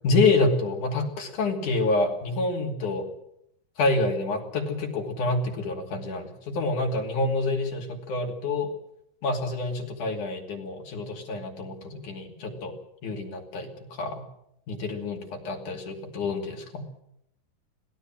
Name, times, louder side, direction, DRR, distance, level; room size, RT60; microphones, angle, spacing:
voice 1, 0.0-3.0 3.8-8.7 9.2-12.7 13.0-14.2 14.7-16.8, left 3 dB, 50° left, 1 dB, 3.7 m, -27 dB
24.5 x 17.0 x 7.6 m, 0.75 s
omnidirectional pair, 5.2 m